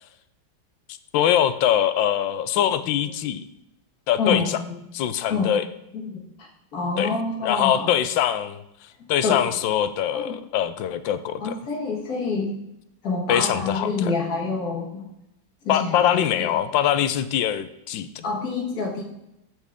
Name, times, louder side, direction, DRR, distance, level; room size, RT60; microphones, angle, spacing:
voice 1, 1.1-3.4 4.1-4.6 4.9-5.6 7.0-7.1 7.4-8.6 9.1-11.5 13.3-14.1 15.7-18.1, left 10 dB, 80° left, 12 dB, 1.3 m, -23 dB
voice 2, 4.2-4.8 5.3-5.5 5.9-7.9 9.2-9.4 10.1-10.3 11.4-12.6 13.0-15.1 15.6-16.5 18.2-19.0, left 4 dB, 50° left, -2 dB, 2.0 m, -27 dB
14.5 x 5.0 x 3.5 m, 0.82 s
omnidirectional pair, 2.1 m